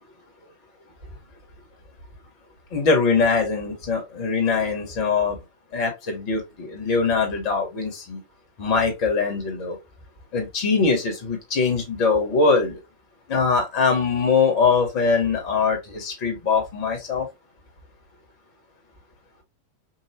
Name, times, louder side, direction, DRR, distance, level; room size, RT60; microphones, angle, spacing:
voice 1, 2.7-5.4 5.7-8.2 8.6-9.8 10.3-12.8 13.3-17.3, left 4 dB, 45° left, 1.8 m, -22 dB
5.5 x 2.6 x 3.1 m
figure-of-eight pair, 90°, 0 cm